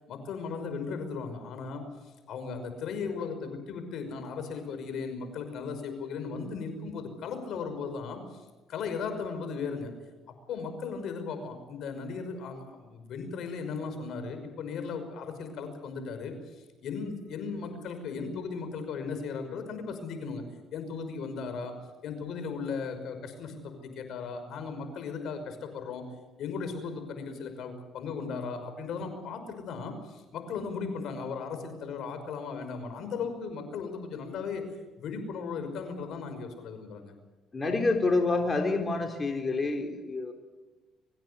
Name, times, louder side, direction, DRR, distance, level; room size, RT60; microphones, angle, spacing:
voice 1, 0.1-1.9 2.3-10.1 10.5-20.4 20.7-26.1 26.4-34.7 35.0-37.1, left 5 dB, 70° left, 8 dB, 5.7 m, -37 dB
voice 2, 37.5-40.3, left 3 dB, 25° left, 3 dB, 3.7 m, -27 dB
25.0 x 15.5 x 8.3 m, 1.2 s
cardioid pair, 85°, 0 cm